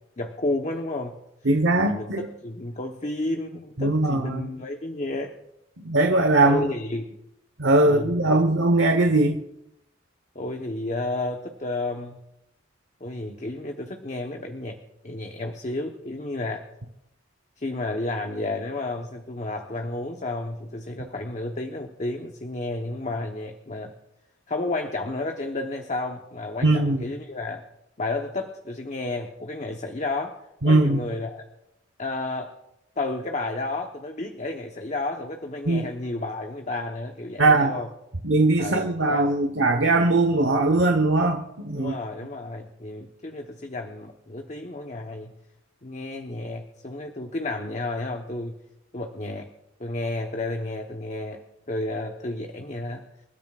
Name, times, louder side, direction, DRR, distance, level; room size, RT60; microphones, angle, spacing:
voice 1, 0.2-1.2 1.8-5.3 6.4-7.0 7.8-8.4 10.3-12.2 13.0-14.8 15.0-16.7 17.6-23.9 24.5-27.6 28.0-30.4 30.6-31.4 32.0-32.5 33.0-37.9 38.6-39.3 41.7-45.3 45.8-48.6 48.9-49.5 49.8-51.4 51.7-53.0, left 2 dB, 40° left, 3 dB, 1.0 m, -31 dB
voice 2, 1.5-2.2 3.8-4.5 5.8-6.7 7.6-9.4 26.6-27.0 30.6-31.0 35.7-35.9 37.4-37.7 38.2-41.9, right 2 dB, 75° right, 4 dB, 1.1 m, -20 dB
28.0 x 13.0 x 2.4 m, 0.85 s
head